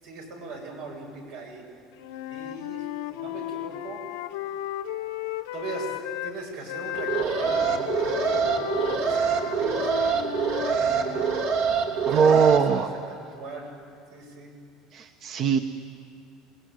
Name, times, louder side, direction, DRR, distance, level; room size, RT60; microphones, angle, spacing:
voice 1, 0.0-1.6 2.3-4.0 5.5-5.9 6.2-11.3 11.9-13.7 14.1-14.5, right 3 dB, 85° right, 1 dB, 7.8 m, -39 dB
Wind instrument woodwind instrument, 2.0-6.4 6.7-11.5, left 13 dB, 85° left, 1.1 m, -34 dB
Alarm, 6.9-12.6, right 6 dB, 70° right, 3.1 m, -25 dB
voice 2, 12.1-12.9 14.9-15.6, right 6 dB, 45° right, 6 dB, 1.1 m, -21 dB
29.0 x 19.5 x 9.4 m, 2.3 s
supercardioid pair, 130°, 0 cm